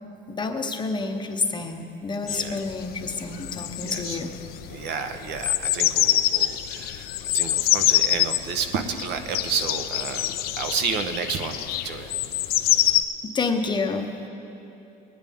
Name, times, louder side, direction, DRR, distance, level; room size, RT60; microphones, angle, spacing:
voice 1, 0.3-4.3 13.2-14.2, left 4 dB, 25° left, 5 dB, 0.8 m, -28 dB
voice 2, 2.2-2.6 3.9-4.2 4.7-7.1 7.3-12.1, right 6 dB, 60° right, 7 dB, 0.9 m, -31 dB
sound 1, 2.3-13.0, left 13 dB, 55° left, 0.5 m, -25 dB
18.5 x 10.0 x 3.6 m, 2.9 s
cardioid pair, 115°, 19 cm